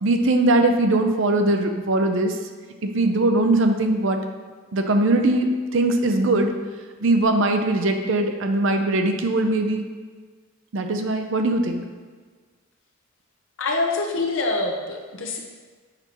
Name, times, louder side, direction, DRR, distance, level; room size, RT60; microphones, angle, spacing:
voice 1, 0.0-2.4 2.8-4.2 4.7-6.5 7.0-9.8 10.7-11.8, right 2 dB, 60° right, 5 dB, 0.5 m, -20 dB
voice 2, 13.6-15.4, left 2 dB, 60° left, 1 dB, 0.8 m, -25 dB
6.6 x 5.4 x 3.0 m, 1.5 s
head